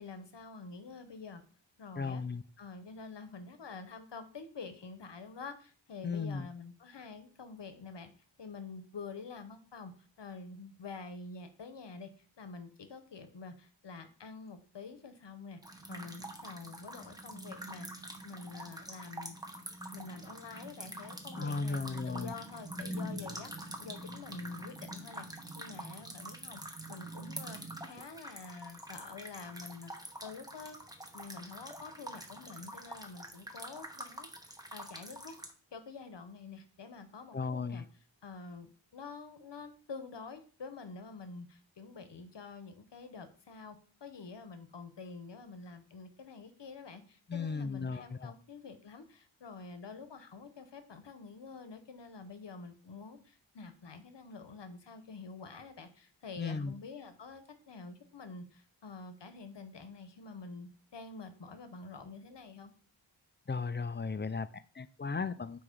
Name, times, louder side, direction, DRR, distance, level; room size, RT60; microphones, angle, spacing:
voice 1, 0.0-1.4 1.8-2.2 2.6-8.1 8.4-9.9 10.2-12.1 12.4-15.6 15.9-19.4 19.9-23.5 23.8-26.6 26.9-27.6 27.8-29.9 30.2-30.8 31.1-35.3 35.7-37.8 38.2-62.8, left 4 dB, 65° left, 9 dB, 1.0 m, -47 dB
voice 2, 2.0-2.4 6.0-6.5 21.3-22.3 37.3-37.8 47.3-48.3 56.4-56.7 63.5-65.6, left 4 dB, 25° left, 14 dB, 0.4 m, -36 dB
sound 1, 15.6-35.5, right 1 dB, 10° right, 1.0 m, -45 dB
8.4 x 3.1 x 5.0 m, 0.42 s
wide cardioid pair, 90°, 45 cm